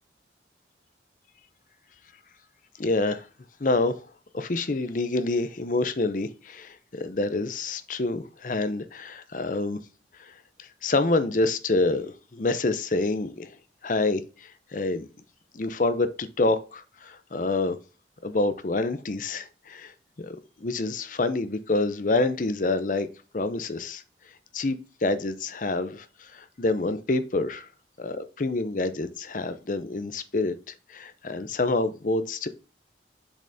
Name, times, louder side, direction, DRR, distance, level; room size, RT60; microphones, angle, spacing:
voice 1, 2.8-3.3 3.6-4.0 4.3-9.8 10.2-10.3 10.6-13.6 13.8-15.1 15.5-17.8 18.2-23.1 23.3-24.0 24.5-27.7 28.0-32.5, left 2 dB, 45° left, 0.6 m, -27 dB
7.2 x 5.3 x 2.7 m
head